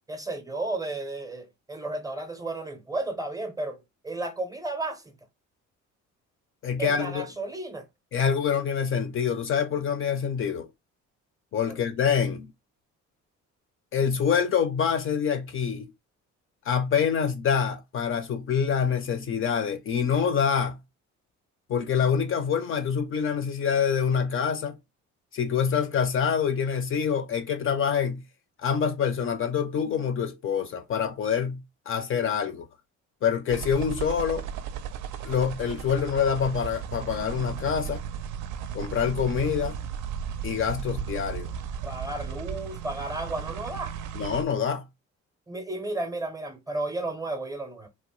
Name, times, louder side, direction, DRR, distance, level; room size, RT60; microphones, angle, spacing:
voice 1, 0.1-5.1 6.8-7.9 11.7-11.8 41.8-43.9 45.5-47.9, right 2 dB, 10° right, 0.5 m, -33 dB
voice 2, 6.6-7.3 8.1-10.7 11.5-12.5 13.9-15.9 16.7-20.8 21.7-24.8 25.3-28.2 28.6-32.7 33.2-34.4 35.2-38.0 38.7-39.8 40.4-41.5 44.1-44.8, left 7 dB, 45° left, 0.4 m, -26 dB
sound 1, 33.5-44.5, right 8 dB, 80° right, 0.5 m, -35 dB
2.8 x 2.0 x 3.0 m
cardioid pair, 90°, 30 cm